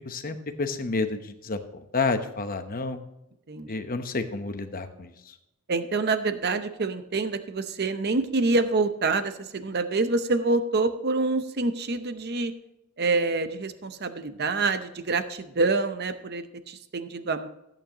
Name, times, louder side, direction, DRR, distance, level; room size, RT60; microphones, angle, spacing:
voice 1, 0.0-1.6 1.9-3.0 3.7-5.3, left 3 dB, 40° left, 7 dB, 0.9 m, -30 dB
voice 2, 5.7-12.5 13.0-17.5, right 3 dB, 45° right, 10 dB, 0.7 m, -26 dB
14.0 x 8.9 x 3.0 m, 0.85 s
head